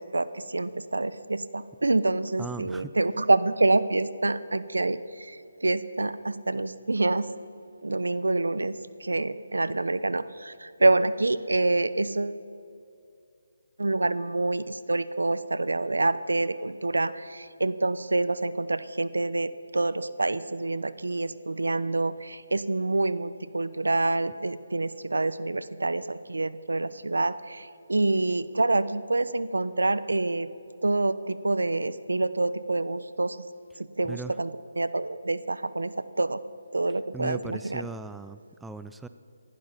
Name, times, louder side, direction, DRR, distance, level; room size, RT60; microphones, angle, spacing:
voice 1, 0.0-7.3 7.8-12.4 13.8-30.5 30.8-33.4 33.8-34.5 34.8-36.4 36.7-37.9, right 2 dB, 85° right, 15 dB, 0.7 m, -27 dB
voice 2, 2.4-2.9 34.0-34.4 37.1-39.1, right 3 dB, 5° right, 10 dB, 0.4 m, -38 dB
19.0 x 12.0 x 5.7 m, 2.5 s
figure-of-eight pair, 150°, 0 cm